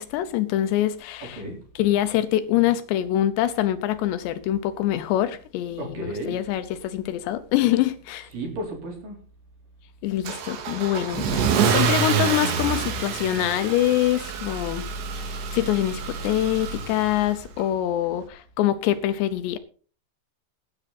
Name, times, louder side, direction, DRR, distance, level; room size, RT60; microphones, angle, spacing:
voice 1, 0.0-1.4 1.8-8.3 10.0-19.6, left 13 dB, 80° left, 2.8 m, -25 dB
voice 2, 5.8-6.4 8.3-9.2, right 1 dB, 50° right, 5.4 m, -33 dB
Car / Engine starting / Accelerating revving vroom, 10.3-17.4, right 6 dB, 75° right, 4.0 m, -27 dB
18.5 x 9.1 x 4.1 m
omnidirectional pair, 5.2 m